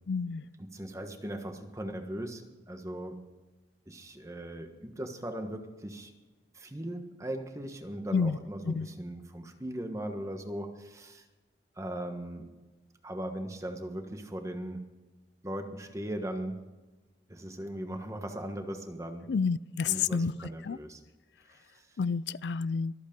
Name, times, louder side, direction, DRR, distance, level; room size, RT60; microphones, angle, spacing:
voice 1, 0.1-0.4 8.1-8.4 8.7-8.9 19.3-20.3 20.6-20.8 22.0-22.9, left 5 dB, 80° left, 0.4 m, -29 dB
voice 2, 0.6-2.4 2.7-3.2 3.9-6.1 6.5-11.2 11.8-12.5 13.0-14.8 15.4-16.6 17.3-19.3 19.9-21.0 21.5-21.6, right 1 dB, 20° right, 1.3 m, -38 dB
23.0 x 8.3 x 5.2 m
head